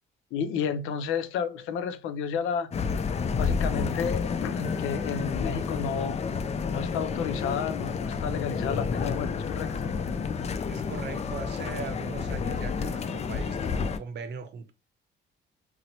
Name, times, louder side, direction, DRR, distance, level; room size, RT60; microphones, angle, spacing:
voice 1, 0.3-2.7 3.4-6.2 6.7-9.9, left 7 dB, 90° left, 0.5 m, -32 dB
sound 1, 2.7-14.0, left 5 dB, 35° left, 0.4 m, -30 dB
voice 2, 10.7-14.7, right 6 dB, 60° right, 0.7 m, -40 dB
2.9 x 2.0 x 3.9 m
cardioid pair, 90°, 20 cm